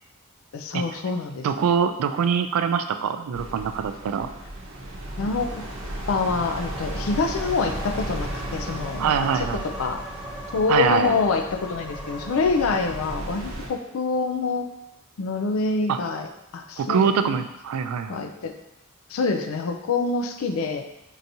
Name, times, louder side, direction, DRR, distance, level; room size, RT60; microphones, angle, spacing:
voice 1, 0.5-1.5 5.2-5.7 6.1-10.0 10.5-14.7 15.2-17.2 18.1-18.5 19.1-20.9, left 4 dB, 70° left, 6 dB, 0.4 m, -26 dB
voice 2, 1.4-4.3 9.0-9.7 10.7-11.2 15.9-16.0 16.8-18.3, right 7 dB, 90° right, 9 dB, 0.3 m, -24 dB
sound 1, 3.3-13.7, right 1 dB, 70° right, 0.7 m, -35 dB
sound 2, 4.9-12.9, equal, 5° right, 0.4 m, -40 dB
4.6 x 2.8 x 2.6 m, 0.86 s
head